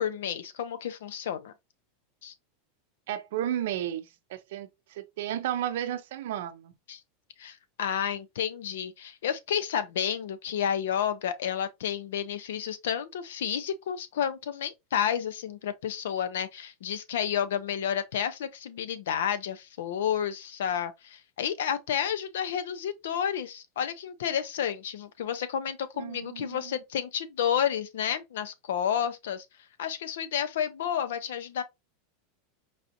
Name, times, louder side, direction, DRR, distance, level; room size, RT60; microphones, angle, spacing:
voice 1, 0.0-1.5 2.2-2.3 6.9-7.0 7.4-29.5 29.8-31.6, left 9 dB, 85° left, 0.6 m, -31 dB
voice 2, 3.1-4.0 4.3-6.7 26.0-26.8, right 11 dB, 65° right, 0.5 m, -33 dB
4.8 x 2.5 x 2.7 m
supercardioid pair, 170°, 0 cm